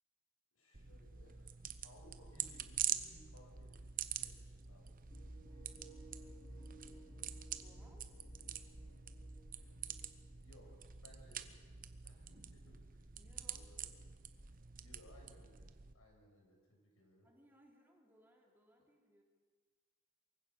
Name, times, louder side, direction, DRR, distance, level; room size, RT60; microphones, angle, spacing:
voice 1, 0.5-1.5 1.8-5.0 10.4-11.5 12.0-13.9 14.8-17.3, equal, 85° left, 0 dB, 6.8 m, -63 dB
sound 1, 0.7-15.9, right 9 dB, 40° right, 0.9 m, -46 dB
sound 2, 5.1-10.4, right 1 dB, 25° left, 3.6 m, -56 dB
voice 2, 7.6-8.1 13.2-13.7 17.2-19.2, right 1 dB, 10° right, 0 dB, 3.4 m, -67 dB
23.5 x 16.0 x 7.3 m, 1.5 s
head